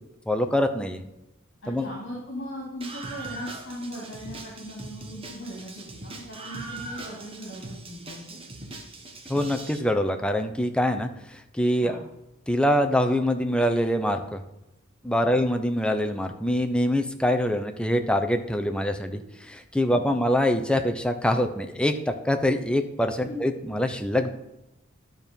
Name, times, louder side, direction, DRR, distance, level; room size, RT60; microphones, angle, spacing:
voice 1, 0.3-1.0 1.7-1.9 9.3-12.0 12.5-14.4 15.0-19.2 19.5-24.3, left 1 dB, 5° left, 5 dB, 0.7 m, -24 dB
voice 2, 1.6-8.4 11.8-12.0 15.2-15.4 20.1-20.2 23.2-23.3, equal, 55° left, -5 dB, 2.9 m, -39 dB
Screaming, 2.8-9.8, right 2 dB, 30° right, 1.2 m, -40 dB
12.0 x 4.6 x 5.3 m, 0.88 s
head